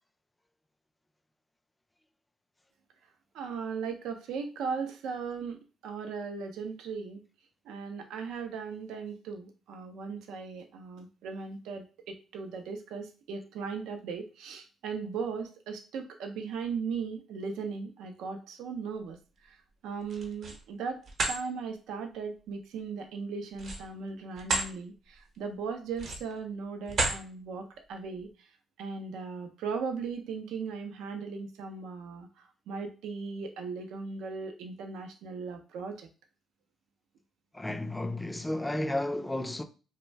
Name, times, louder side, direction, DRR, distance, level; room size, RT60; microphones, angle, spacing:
voice 1, 3.3-7.2 7.6-21.0 21.3-28.5 28.8-36.1, right 5 dB, 85° right, 0.4 m, -38 dB
sound 1, 20.0-20.6 21.0-21.4 23.5-24.7 25.2-25.4 25.9-26.4 26.9-27.2, right 3 dB, 60° right, 0.8 m, -31 dB
voice 2, 37.5-39.6, left 1 dB, 10° left, 0.3 m, -32 dB
2.6 x 2.0 x 3.2 m
cardioid pair, 90°, 0 cm